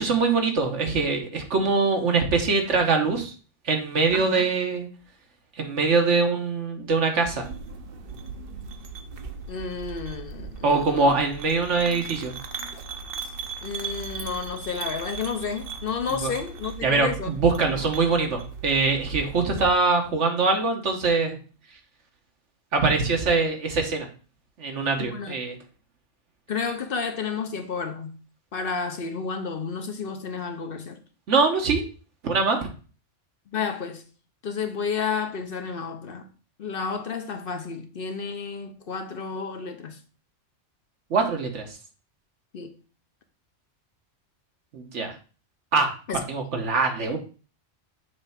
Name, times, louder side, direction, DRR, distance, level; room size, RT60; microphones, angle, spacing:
voice 1, 0.0-3.3 3.7-4.9 5.6-7.4 10.6-12.3 16.2-16.3 16.8-21.4 22.7-24.1 24.6-25.5 31.3-31.8 32.2-32.7 41.1-41.6 44.7-45.1 45.7-45.9 46.3-47.2, right 4 dB, 80° right, 1.5 m, -23 dB
voice 2, 4.1-4.5 9.5-11.1 13.6-17.3 17.8-17.9 25.0-25.3 26.5-28.2 28.5-31.0 33.5-34.1 34.4-36.3 36.6-40.0 42.5-42.8 46.1-46.2, left 5 dB, 55° left, 0.9 m, -31 dB
sound 1, 7.4-19.8, right 5 dB, 55° right, 0.9 m, -38 dB
6.8 x 3.4 x 5.7 m
omnidirectional pair, 1.2 m